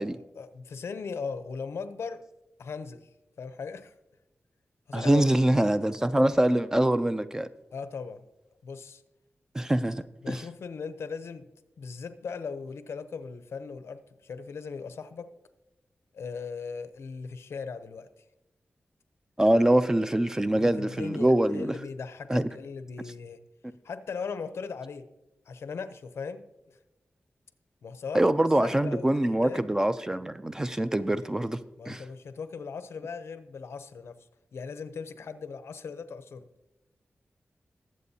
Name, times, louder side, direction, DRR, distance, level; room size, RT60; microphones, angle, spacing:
voice 1, 0.0-2.2 2.6-3.1 3.4-3.9 4.9-5.2 7.7-8.2 8.6-9.0 10.2-11.5 11.8-15.3 16.1-18.1 19.4-19.6 20.6-23.4 23.8-25.1 25.5-26.5 27.8-28.2 28.6-29.6 31.8-34.2 34.5-36.5, left 5 dB, 85° left, 0.6 m, -38 dB
voice 2, 4.9-7.5 9.5-10.4 19.4-21.7 22.3-22.5 28.1-31.6 31.9-32.0, right 1 dB, 15° right, 0.3 m, -24 dB
21.0 x 7.6 x 2.8 m
wide cardioid pair, 170°, 4 cm